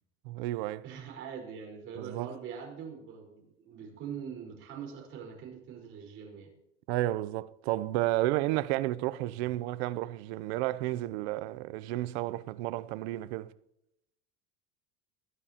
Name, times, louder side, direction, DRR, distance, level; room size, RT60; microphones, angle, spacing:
voice 1, 0.2-0.8 2.0-2.3 6.9-13.5, right 16 dB, 75° right, 0.6 m, -32 dB
voice 2, 0.8-6.5, right 7 dB, 40° right, 4.5 m, -43 dB
21.0 x 11.0 x 2.9 m
cardioid pair, 150°, 32 cm